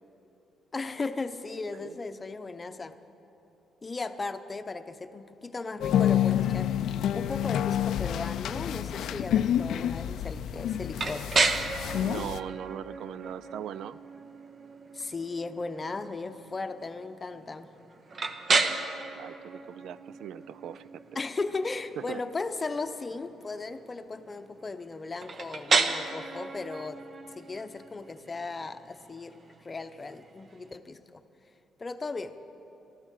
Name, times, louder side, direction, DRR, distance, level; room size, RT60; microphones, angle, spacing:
voice 1, 0.7-2.9 3.8-11.3 14.9-17.7 21.1-27.0 27.4-31.2 31.8-32.3, left 3 dB, 30° left, 10 dB, 0.8 m, -36 dB
sound 1, 5.8-12.4, left 10 dB, 75° left, 0.4 m, -28 dB
sound 2, 11.0-30.7, right 3 dB, 45° right, 1.0 m, -33 dB
voice 2, 12.0-14.0 19.1-20.9 22.1-22.2, right 9 dB, 75° right, 16 dB, 0.4 m, -40 dB
15.5 x 13.0 x 6.6 m, 2.9 s
cardioid pair, 90°, 0 cm